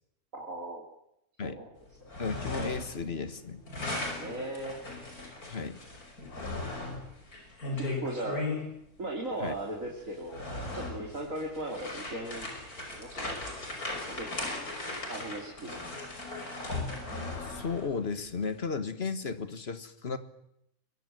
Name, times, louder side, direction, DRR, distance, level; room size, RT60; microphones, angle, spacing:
voice 1, 0.3-0.8 1.4-1.7 4.2-4.8 6.9-7.0 7.7-8.5 9.0-10.4 10.7-12.5 12.9-13.5 14.2-14.6 15.1-15.9, right 1 dB, 55° right, -1 dB, 3.6 m, -37 dB
sound 1, 1.9-3.0 3.3-8.6 9.5-9.6 10.1-17.9, left 2 dB, 70° left, 6.1 m, -37 dB
voice 2, 2.2-3.6 5.5-5.8 9.4-9.5 17.4-20.2, left 4 dB, 40° left, 11 dB, 1.7 m, -34 dB
23.0 x 22.5 x 7.9 m, 0.78 s
omnidirectional pair, 1.6 m